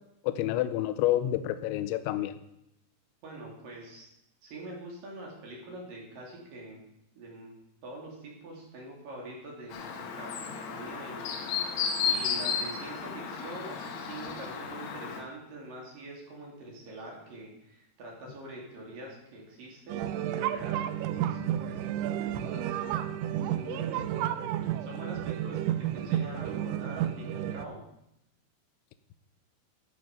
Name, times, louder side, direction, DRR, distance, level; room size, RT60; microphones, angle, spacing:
voice 1, 0.2-2.4, left 13 dB, 85° left, 11 dB, 2.7 m, -28 dB
voice 2, 3.2-4.1 4.4-6.8 7.2-7.5 7.8-11.3 12.0-23.0 23.4-24.1 24.8-27.8, right 1 dB, 50° right, -2 dB, 3.8 m, -44 dB
Chirp tweet, 9.7-15.2, left 6 dB, 70° left, 3.0 m, -33 dB
sound 1, 19.9-27.7, right 11 dB, 85° right, 2.7 m, -31 dB
13.5 x 7.0 x 5.2 m, 0.81 s
omnidirectional pair, 5.9 m